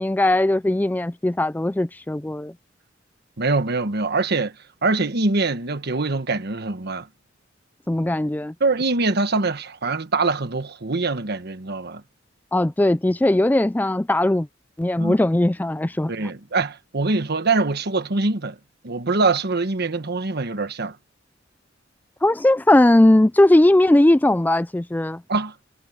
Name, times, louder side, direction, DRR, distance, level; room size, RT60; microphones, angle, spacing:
voice 1, 0.0-2.5 7.9-8.5 12.5-14.5 14.8-16.1 22.2-25.2, left 1 dB, 10° left, 0.4 m, -18 dB
voice 2, 3.4-4.5 4.8-7.1 8.6-12.0 15.0-15.2 16.1-18.6 18.8-21.0 25.3-25.5, right 3 dB, 55° right, 1.4 m, -23 dB
head